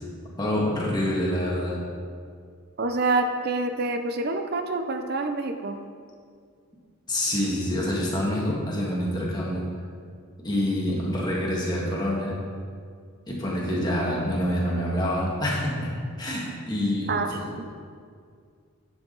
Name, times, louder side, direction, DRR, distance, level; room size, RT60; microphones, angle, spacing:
voice 1, 0.4-1.9 7.1-9.7 10.4-12.4 13.3-17.5, left 1 dB, 20° left, -4 dB, 1.9 m, -27 dB
voice 2, 2.8-5.8 17.1-17.7, right 3 dB, 45° right, 6 dB, 0.6 m, -27 dB
11.0 x 7.3 x 4.0 m, 2.1 s
head